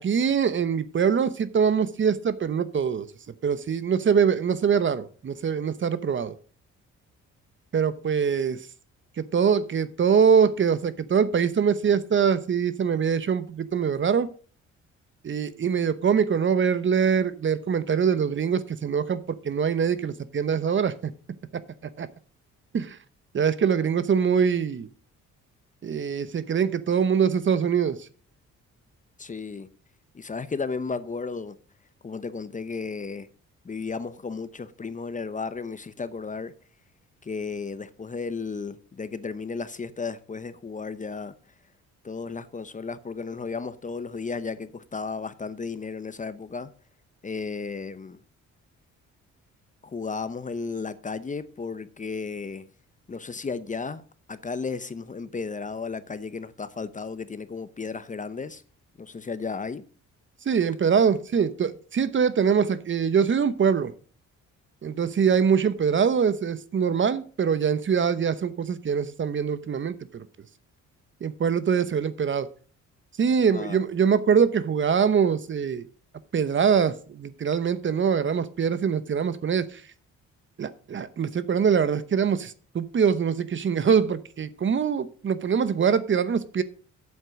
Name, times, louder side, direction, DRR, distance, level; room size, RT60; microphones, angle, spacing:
voice 1, 0.0-3.1 3.4-6.4 7.7-8.6 9.2-14.3 15.2-21.1 22.0-22.1 22.7-23.0 23.3-24.9 25.8-28.0 60.5-63.9 64.8-70.2 71.2-72.5 73.2-75.8 76.3-79.8 80.6-86.6, right 7 dB, 40° right, 0.9 m, -23 dB
voice 2, 29.2-29.7 30.1-31.6 32.0-33.3 33.6-36.5 37.2-41.3 42.0-46.7 47.2-48.2 49.8-52.7 53.1-54.0 54.3-58.6 59.0-59.8 73.5-73.8, left 4 dB, 25° left, 0.8 m, -34 dB
8.2 x 7.3 x 6.3 m
cardioid pair, 90°, 30 cm